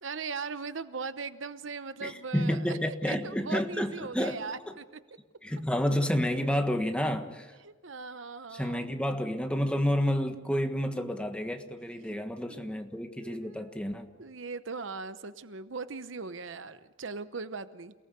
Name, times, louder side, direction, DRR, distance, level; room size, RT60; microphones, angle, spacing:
voice 1, 0.0-5.0 7.6-8.9 12.0-12.8 13.1-13.8 14.2-17.9, right 4 dB, 65° right, 12 dB, 0.9 m, -39 dB
voice 2, 2.0-4.4 4.7-4.8 5.4-7.5 8.5-14.1, equal, 5° left, 5 dB, 1.5 m, -30 dB
29.0 x 18.5 x 6.8 m, 1.2 s
head